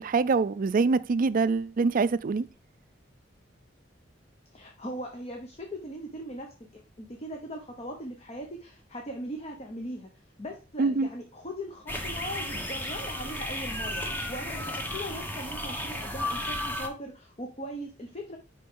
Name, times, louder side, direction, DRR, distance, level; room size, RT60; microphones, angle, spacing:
voice 1, 0.0-2.5 10.8-11.1, right 4 dB, 45° right, 0.4 m, -24 dB
voice 2, 4.5-10.1 10.4-18.4, equal, 35° left, 1.0 m, -39 dB
sound 1, 11.9-16.9, left 1 dB, 10° left, 1.0 m, -34 dB
10.5 x 3.8 x 3.8 m
head